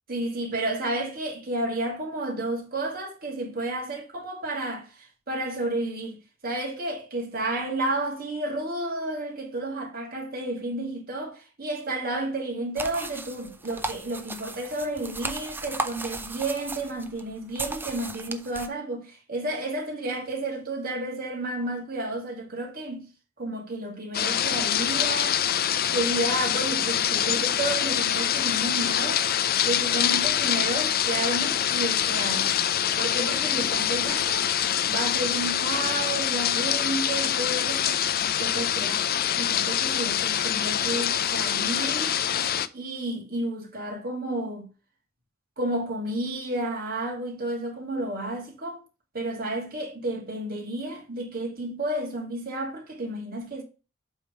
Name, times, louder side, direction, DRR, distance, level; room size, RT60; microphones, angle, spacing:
voice 1, 0.1-23.1 23.4-25.4 25.9-29.2 29.6-32.5 33.0-34.5 34.8-39.1 39.4-42.2 42.7-44.7 45.6-48.8 49.1-53.6, right 2 dB, 45° right, 2.4 m, -31 dB
sound 1, 12.8-18.7, right 2 dB, 10° right, 0.6 m, -36 dB
sound 2, 24.1-42.7, left 10 dB, 45° left, 0.5 m, -25 dB
8.0 x 3.6 x 5.1 m
head